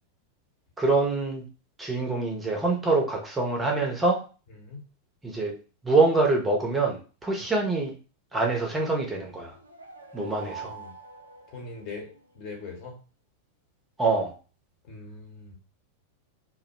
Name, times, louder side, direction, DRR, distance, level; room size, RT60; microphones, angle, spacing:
voice 1, 0.8-1.4 1.8-4.2 5.2-5.6 5.8-7.9 8.3-9.6 10.1-10.7 14.0-14.3, right 3 dB, 15° right, 1 dB, 0.6 m, -25 dB
sound 1, 9.4-12.3, right 5 dB, 85° right, 0.4 m, -45 dB
voice 2, 10.4-10.9 11.5-13.0 14.8-15.5, left 4 dB, 40° left, 1 dB, 0.9 m, -41 dB
2.3 x 2.0 x 2.9 m, 0.34 s
figure-of-eight pair, 90°, 0 cm